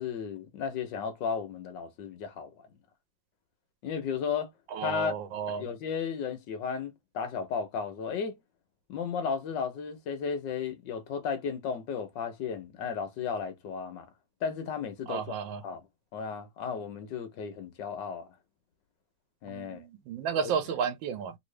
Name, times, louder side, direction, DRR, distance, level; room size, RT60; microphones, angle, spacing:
voice 1, 0.0-2.7 3.8-4.5 4.8-5.1 5.5-8.4 8.9-14.1 14.4-15.4 15.6-15.8 16.1-18.3 19.4-19.8 20.4-20.5, left 6 dB, 75° left, 1.5 m, -34 dB
voice 2, 4.7-5.7 15.1-15.6 19.5-21.3, right 7 dB, 90° right, 1.4 m, -32 dB
3.5 x 2.7 x 3.2 m
omnidirectional pair, 2.0 m